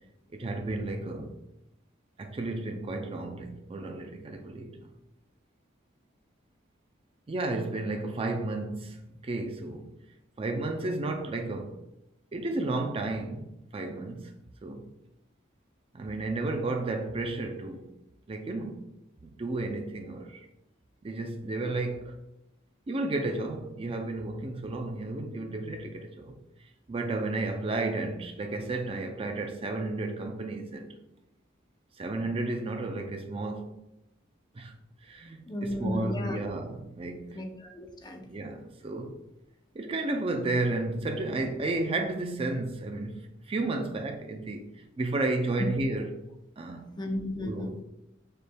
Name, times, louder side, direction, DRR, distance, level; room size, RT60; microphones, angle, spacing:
voice 1, 0.3-1.3 2.2-4.8 7.3-9.9 10.4-11.8 12.3-14.4 14.6-14.9 15.9-17.9 18.3-18.9 19.2-20.5 21.0-22.2 22.9-26.4 26.9-31.0 32.0-33.7 34.5-34.8 35.0-37.5 38.2-39.1 39.7-44.7 45.0-46.2 46.6-46.9 47.4-47.8, right 2 dB, 30° right, 0.4 m, -32 dB
voice 2, 35.5-36.4 37.3-38.2 47.0-47.7, left 1 dB, 25° left, 0.6 m, -34 dB
6.6 x 3.4 x 2.2 m
head